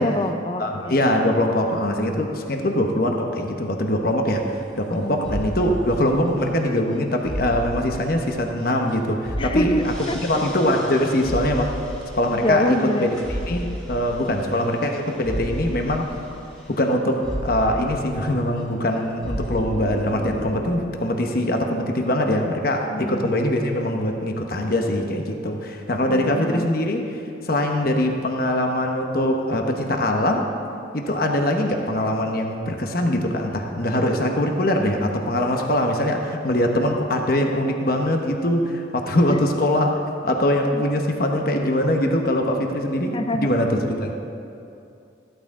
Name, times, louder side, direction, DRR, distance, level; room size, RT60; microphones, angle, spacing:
voice 1, 0.0-1.0 5.0-5.2 9.4-9.8 10.1-10.2 12.4-13.1 22.9-23.3 26.1-26.7 39.3-39.4 40.7-40.8 43.1-43.5, left 1 dB, 25° left, 7 dB, 0.6 m, -25 dB
voice 2, 0.6-9.9 10.2-11.8 12.2-13.1 13.5-16.1 16.7-17.2 17.4-27.0 27.4-30.5 30.9-40.0 40.2-44.1, left 1 dB, 50° left, 3 dB, 1.0 m, -22 dB
sound 1, 4.3-4.9 5.2-9.0 9.2-18.6 18.9-20.5, equal, 5° left, 2.0 m, -33 dB
14.5 x 12.5 x 3.7 m, 2.7 s
head